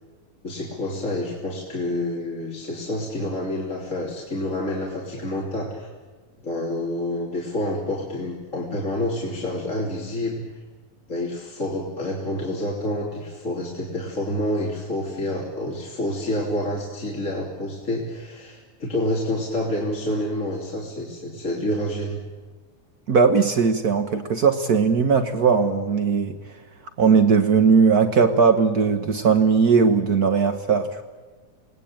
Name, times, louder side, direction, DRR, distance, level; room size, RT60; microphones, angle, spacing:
voice 1, 0.4-5.9 6.4-10.5 11.1-22.2, left 1 dB, 25° left, -3 dB, 3.4 m, -28 dB
voice 2, 23.1-26.4 27.0-31.0, right 5 dB, 85° right, 7 dB, 0.8 m, -18 dB
28.0 x 20.0 x 8.8 m, 1.4 s
omnidirectional pair, 3.6 m